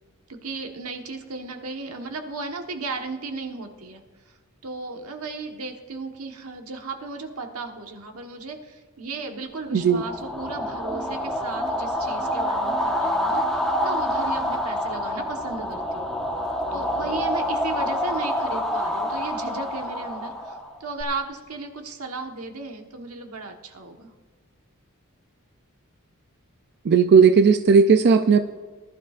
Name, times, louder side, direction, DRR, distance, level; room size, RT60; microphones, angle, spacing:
voice 1, 0.3-4.0 4.6-16.1 16.7-24.1, right 3 dB, 85° right, 4 dB, 1.3 m, -35 dB
voice 2, 9.7-10.0 26.9-28.4, right 5 dB, 50° right, 8 dB, 0.4 m, -16 dB
sound 1, 9.9-21.0, equal, ahead, 1.2 m, -27 dB
19.5 x 11.5 x 2.5 m, 1.4 s
head